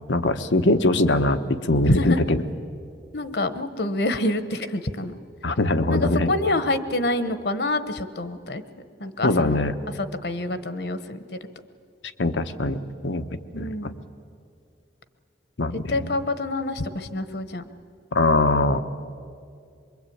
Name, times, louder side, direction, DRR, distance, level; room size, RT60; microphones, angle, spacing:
voice 1, 0.1-2.4 5.4-6.3 9.2-9.7 12.2-12.8 13.0-13.9 15.6-16.1 18.1-18.8, left 2 dB, 90° left, 9 dB, 1.1 m, -22 dB
voice 2, 1.9-2.2 3.1-5.2 5.9-8.6 9.0-9.6 10.0-11.2 13.5-14.0 15.7-17.7, left 2 dB, 65° left, 11 dB, 1.1 m, -26 dB
24.0 x 22.5 x 8.7 m, 2.3 s
head